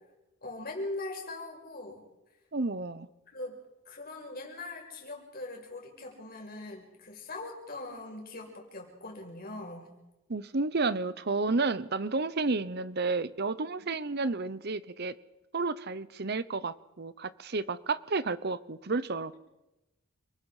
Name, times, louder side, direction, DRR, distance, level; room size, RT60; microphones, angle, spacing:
voice 1, 0.4-2.0 3.3-3.6 3.9-9.9 13.8-13.9, left 2 dB, 45° left, 1 dB, 5.8 m, -41 dB
voice 2, 2.5-3.1 10.3-15.1 15.5-19.3, right 3 dB, 50° right, 16 dB, 0.8 m, -31 dB
29.0 x 20.0 x 5.0 m, 1.0 s
head